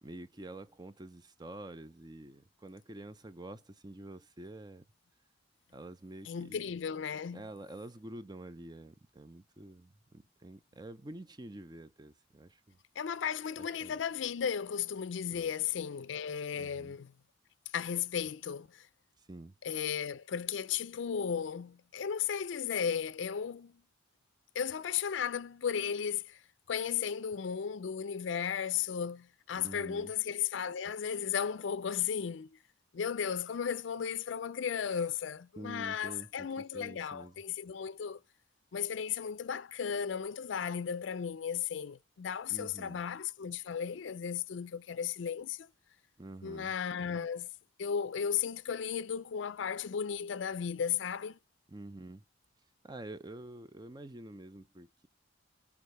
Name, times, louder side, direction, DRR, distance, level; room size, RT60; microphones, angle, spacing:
voice 1, 0.0-4.8 5.7-6.6 7.3-12.8 13.8-14.0 15.3-15.5 16.6-16.9 19.2-19.6 29.6-30.1 35.6-36.5 36.7-37.4 42.5-43.0 46.2-46.7 51.7-52.2 52.8-55.1, right 1 dB, 20° right, 0.6 m, -47 dB
voice 2, 6.2-7.5 13.0-17.1 17.7-18.9 19.6-23.8 24.5-26.4 26.7-32.6 32.9-38.2 38.7-45.7 46.4-47.5 47.8-51.4, left 7 dB, 70° left, 0.4 m, -35 dB
6.5 x 3.5 x 5.3 m
head